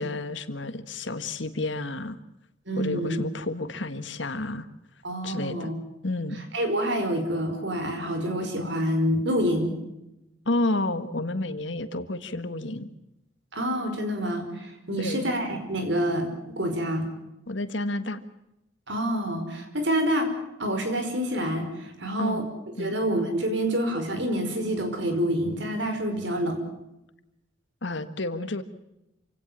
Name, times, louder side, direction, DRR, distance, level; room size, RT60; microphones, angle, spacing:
voice 1, 0.0-2.2 2.8-4.7 5.2-5.7 6.0-6.4 10.4-12.9 15.0-15.3 17.5-18.2 22.2-22.4 22.8-23.0 27.8-28.6, left 2 dB, 70° left, 11 dB, 1.6 m, -30 dB
voice 2, 2.7-3.2 5.0-5.8 6.5-9.7 13.5-17.1 18.9-20.3 20.6-22.4 22.8-26.6, equal, 65° right, 6 dB, 5.2 m, -27 dB
27.5 x 17.5 x 7.4 m, 0.91 s
head